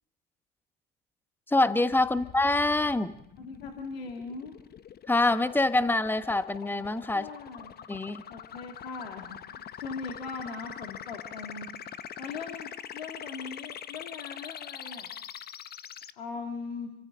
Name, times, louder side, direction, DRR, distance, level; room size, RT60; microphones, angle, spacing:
voice 1, 1.5-3.1 5.1-7.3 7.9-8.2, left 2 dB, 5° left, 12 dB, 1.1 m, -25 dB
sound 1, 1.9-16.1, left 9 dB, 30° left, 0.9 m, -44 dB
voice 2, 3.4-4.6 7.1-7.7 8.3-11.7 12.2-15.2 16.2-16.9, left 4 dB, 85° left, 2 dB, 2.5 m, -40 dB
29.5 x 25.0 x 3.9 m, 0.77 s
hypercardioid pair, 75°, 30 cm